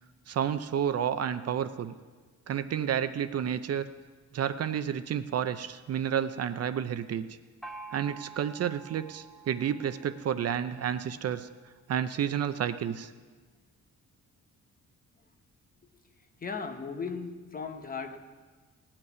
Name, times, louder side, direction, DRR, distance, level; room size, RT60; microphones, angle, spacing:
voice 1, 0.3-1.9 2.5-3.9 4.3-7.3 7.9-11.5 11.9-13.1, right 9 dB, 55° right, 12 dB, 0.6 m, -30 dB
Gong, 7.6-11.1, right 4 dB, ahead, 0.9 m, -48 dB
voice 2, 16.4-18.2, left 5 dB, 30° left, 6 dB, 0.9 m, -36 dB
17.5 x 5.9 x 9.4 m, 1.4 s
wide cardioid pair, 175°, 31 cm